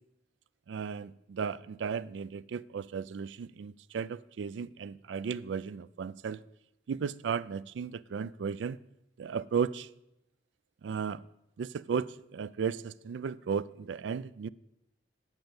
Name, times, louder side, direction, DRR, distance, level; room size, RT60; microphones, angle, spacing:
voice 1, 0.7-6.4 6.9-8.8 9.2-9.9 10.8-11.2 11.6-14.5, right 6 dB, 85° right, 19 dB, 0.3 m, -35 dB
8.9 x 5.3 x 7.8 m, 0.84 s
head